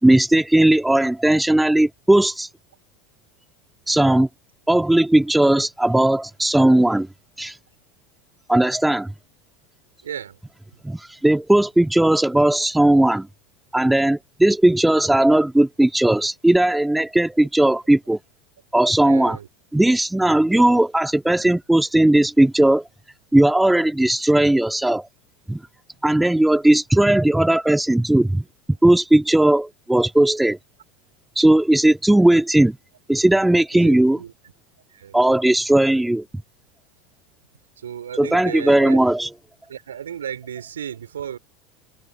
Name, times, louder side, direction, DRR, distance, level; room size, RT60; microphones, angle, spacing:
voice 1, 0.0-2.5 3.9-4.3 4.7-7.1 7.4-7.6 8.5-9.1 10.8-13.3 13.7-18.2 18.7-19.4 19.7-22.8 23.3-25.1 25.5-25.6 26.0-28.4 28.8-30.6 31.4-32.8 33.1-34.2 35.1-36.2 38.2-39.3, right 1 dB, 5° right, 2.4 m, -17 dB
voice 2, 10.0-10.4 10.7-10.8 19.0-19.5 33.7-34.3 34.9-35.2 37.8-39.0 39.7-41.4, right 9 dB, 75° right, 4.7 m, -34 dB
figure-of-eight pair, 80°, 0 cm